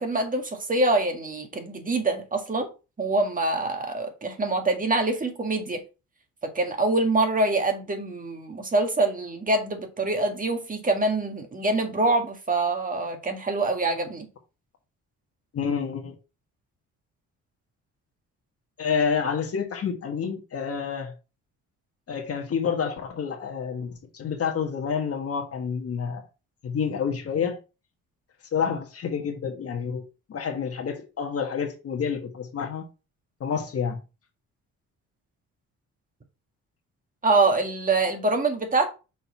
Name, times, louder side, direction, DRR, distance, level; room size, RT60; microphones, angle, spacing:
voice 1, 0.0-2.7 3.0-5.8 6.4-14.3 37.2-38.9, right 2 dB, 25° right, 1.8 m, -25 dB
voice 2, 15.5-16.1 18.8-21.1 22.1-26.2 26.6-27.6 28.5-30.0 30.3-32.8 33.4-34.0, left 6 dB, 50° left, 1.5 m, -28 dB
6.0 x 4.1 x 4.1 m
cardioid pair, 90°, 30 cm